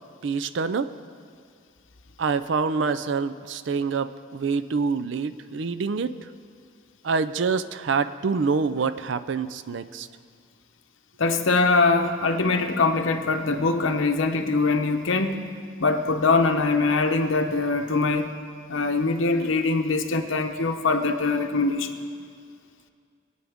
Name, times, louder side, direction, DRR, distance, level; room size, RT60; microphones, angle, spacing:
voice 1, 0.2-0.9 2.2-6.1 7.0-10.1, right 5 dB, 60° right, 13 dB, 0.4 m, -26 dB
voice 2, 11.2-15.4 15.8-18.3 18.7-21.9, left 3 dB, 70° left, 6 dB, 0.8 m, -23 dB
21.5 x 9.2 x 3.5 m, 2.2 s
head